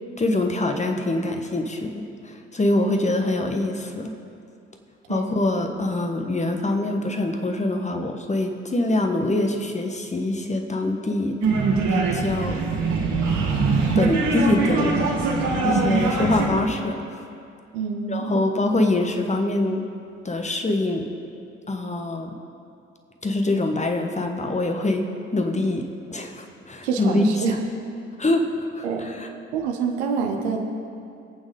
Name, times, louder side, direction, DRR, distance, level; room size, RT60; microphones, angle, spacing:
voice 1, 0.2-4.1 5.1-11.4 11.9-12.6 13.9-15.0 15.6-17.0 18.1-19.9 20.2-21.1 21.7-22.3 23.2-27.6 28.2-29.3, left 2 dB, 20° left, 4 dB, 1.3 m, -24 dB
sound 1, 11.4-16.5, right 3 dB, 50° right, 2.6 m, -22 dB
voice 2, 17.7-18.4 26.8-27.6 28.8-29.0 29.5-30.6, right 6 dB, 65° right, 3 dB, 1.3 m, -26 dB
22.5 x 8.8 x 3.7 m, 2.5 s
figure-of-eight pair, 50°, 36 cm